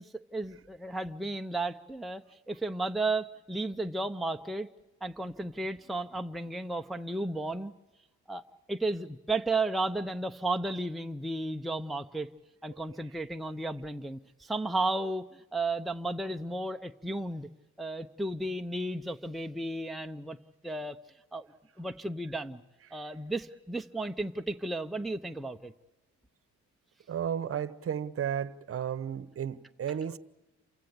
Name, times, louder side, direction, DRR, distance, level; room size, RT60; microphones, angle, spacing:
voice 1, 0.0-4.7 5.0-7.7 8.3-8.4 8.7-12.3 12.6-17.5 17.8-20.4 20.6-21.0 21.3-21.5 21.8-22.6 22.9-25.7, right 2 dB, ahead, 0.7 m, -33 dB
voice 2, 27.1-30.2, right 9 dB, 50° right, 1.0 m, -34 dB
28.5 x 16.0 x 8.7 m
cardioid pair, 90°, 30 cm